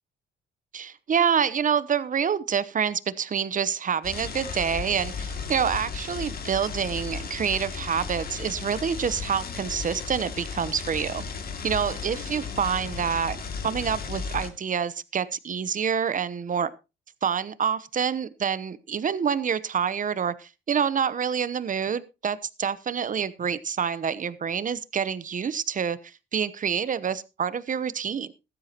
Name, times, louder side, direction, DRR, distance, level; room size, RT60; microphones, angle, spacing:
voice 1, 0.7-11.2 11.6-13.4 13.6-16.7 17.2-26.0 26.3-28.3, right 7 dB, 40° right, 17 dB, 0.9 m, -27 dB
sound 1, 4.0-14.5, left 5 dB, 50° left, 2.4 m, -35 dB
15.0 x 13.0 x 2.9 m, 0.28 s
cardioid pair, 90°, 20 cm